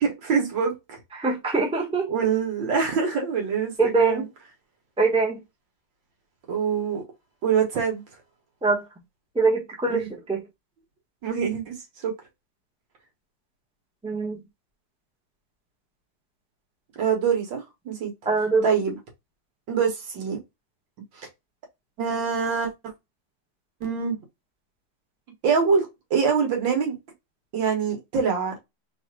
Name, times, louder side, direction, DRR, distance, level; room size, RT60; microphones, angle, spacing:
voice 1, 0.0-1.0 2.1-4.3 6.5-7.0 7.4-8.0 9.9-10.1 11.2-12.1 17.0-18.1 18.6-19.0 19.7-20.4 21.2-21.3 22.0-22.7 23.8-24.2 25.4-27.0 27.5-28.5, right 6 dB, 85° right, 2.0 m, -25 dB
voice 2, 1.2-2.1 3.8-4.2 5.0-5.4 8.6-8.8 9.3-10.4 14.0-14.4 18.2-18.7, right 3 dB, 5° right, 0.8 m, -23 dB
4.0 x 2.5 x 4.4 m
omnidirectional pair, 2.0 m